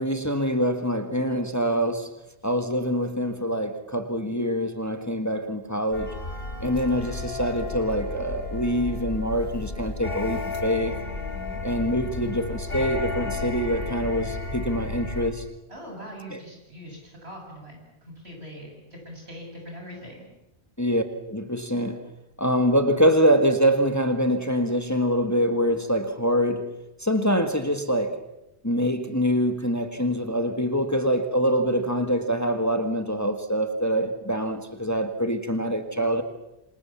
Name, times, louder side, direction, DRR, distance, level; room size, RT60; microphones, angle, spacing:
voice 1, 0.0-2.1 2.4-6.1 6.6-11.0 11.6-15.4 16.3-16.4 20.8-22.0 22.4-26.7 27.0-28.2 28.6-36.2, equal, 15° left, 6 dB, 1.8 m, -25 dB
sound 1, 5.9-15.3, left 3 dB, 65° left, 3.9 m, -33 dB
voice 2, 11.3-11.6 15.7-20.3, equal, 75° right, 1 dB, 8.4 m, -42 dB
27.5 x 26.0 x 7.3 m, 0.88 s
omnidirectional pair, 1.1 m